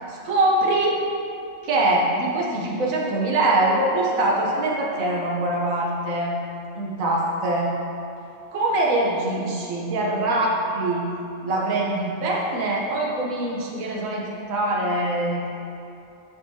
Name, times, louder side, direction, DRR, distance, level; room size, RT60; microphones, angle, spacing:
voice 1, 0.1-1.0 1.6-6.3 6.7-7.7 8.5-11.1 11.4-15.5, right 2 dB, 70° right, -2 dB, 1.4 m, -23 dB
11.5 x 5.3 x 2.9 m, 2.7 s
omnidirectional pair, 1.5 m